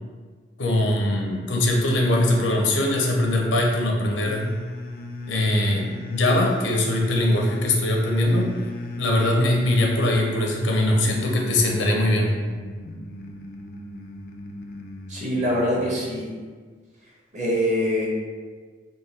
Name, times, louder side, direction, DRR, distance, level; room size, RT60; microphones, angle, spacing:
voice 1, 0.6-4.5 5.3-8.6 9.0-12.3, left 1 dB, 85° left, 0 dB, 0.7 m, -21 dB
sound 1, 4.2-16.1, left 2 dB, 50° left, 0.3 m, -36 dB
voice 2, 15.1-16.4 17.3-18.1, equal, 40° right, -4 dB, 0.9 m, -24 dB
3.9 x 2.2 x 4.0 m, 1.5 s
head